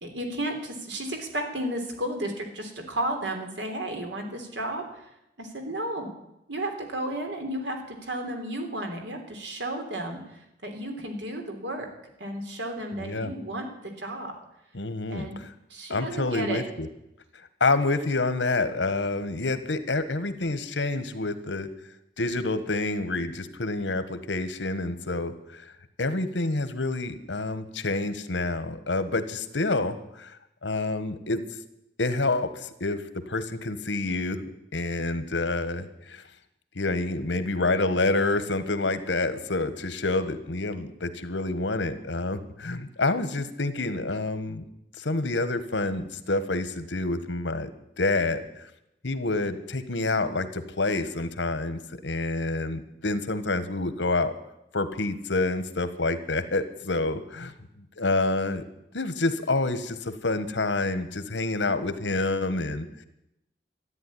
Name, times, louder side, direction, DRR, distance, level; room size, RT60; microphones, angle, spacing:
voice 1, 0.0-5.1 5.4-6.1 6.5-11.9 12.2-14.4 15.1-15.4 15.7-16.6, right 1 dB, 80° right, 4 dB, 3.4 m, -33 dB
voice 2, 13.0-13.3 14.7-15.5 15.9-16.9 17.6-21.7 22.2-25.7 26.0-30.4 30.6-31.4 32.0-34.4 34.7-36.2 36.7-44.6 45.0-47.7 48.0-48.4 49.0-54.3 54.7-57.5 58.0-58.6 58.9-63.0, left 2 dB, 85° left, 12 dB, 1.4 m, -28 dB
13.5 x 9.8 x 9.9 m, 0.85 s
head